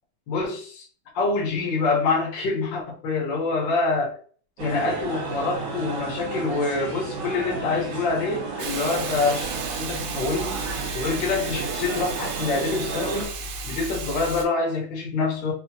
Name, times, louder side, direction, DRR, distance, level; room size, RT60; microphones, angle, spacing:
voice 1, 0.3-0.8 1.1-4.2 4.6-10.5 10.9-13.3 13.6-15.5, left 3 dB, 85° left, -3 dB, 1.0 m, -26 dB
sound 1, 4.6-13.3, right 4 dB, 65° right, 2.5 m, -32 dB
Hiss, 8.6-14.5, right 4 dB, 80° right, 2.3 m, -34 dB
5.3 x 2.4 x 2.8 m, 0.44 s
omnidirectional pair, 4.0 m